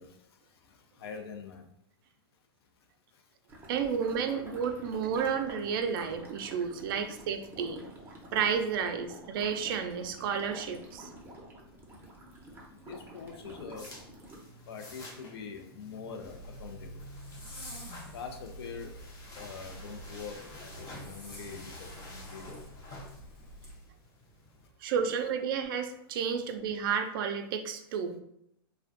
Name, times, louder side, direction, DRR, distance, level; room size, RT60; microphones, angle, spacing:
voice 1, 0.0-1.7 3.1-3.3 11.2-11.4 11.7-12.1 12.7-14.0 14.5-22.8, left 6 dB, 80° left, 5 dB, 0.5 m, -45 dB
sound 1, 3.5-14.4, right 1 dB, 15° right, 0.5 m, -48 dB
voice 2, 3.7-7.8 8.3-11.1 24.8-28.2, right 7 dB, 65° right, 7 dB, 0.4 m, -31 dB
sound 2, 13.3-24.7, left 2 dB, 30° left, 0.6 m, -50 dB
Zipper (clothing), 16.2-23.7, equal, 65° left, 1.1 m, -47 dB
2.4 x 2.1 x 2.5 m, 0.73 s
hypercardioid pair, 130°, 13 cm